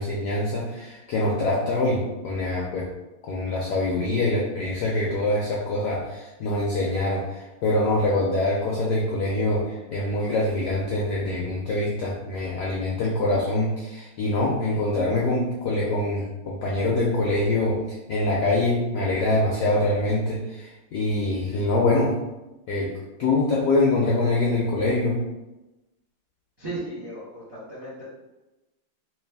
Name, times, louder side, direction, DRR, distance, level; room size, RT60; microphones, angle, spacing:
voice 1, 0.0-2.9 3.3-17.8 18.1-22.2 22.7-22.9 23.2-25.2, left 2 dB, 75° left, -4 dB, 0.9 m, -24 dB
voice 2, 26.6-28.0, right 2 dB, 35° right, -8 dB, 0.4 m, -35 dB
3.1 x 3.1 x 3.4 m, 1.0 s
omnidirectional pair, 2.4 m